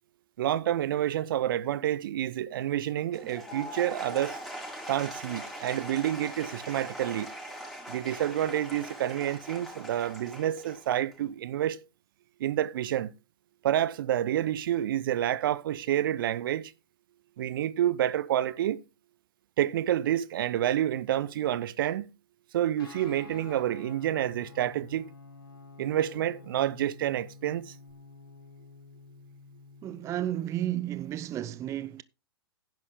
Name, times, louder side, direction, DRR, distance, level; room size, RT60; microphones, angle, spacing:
voice 1, 0.4-4.4 4.9-7.3 7.9-11.8 12.4-13.1 13.6-16.7 17.4-18.8 19.6-22.0 22.5-25.1 25.8-27.7, right 11 dB, 55° right, 0.7 m, -28 dB
Applause / Crowd, 3.1-11.3, right 1 dB, ahead, 5.4 m, -41 dB
Guitar, 22.8-30.8, left 4 dB, 60° left, 4.2 m, -50 dB
voice 2, 29.8-32.0, right 12 dB, 20° right, 0.5 m, -32 dB
10.5 x 10.5 x 3.7 m
figure-of-eight pair, 105°, 13 cm